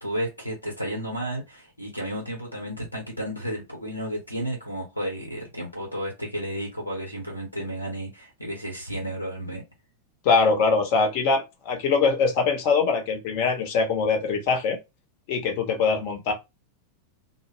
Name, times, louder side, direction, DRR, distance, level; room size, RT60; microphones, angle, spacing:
voice 1, 0.0-9.6, equal, 85° left, 0.9 m, -32 dB
voice 2, 10.2-14.8 15.3-16.3, left 4 dB, 45° left, 0.8 m, -23 dB
2.2 x 2.1 x 3.1 m
figure-of-eight pair, 90°, 0 cm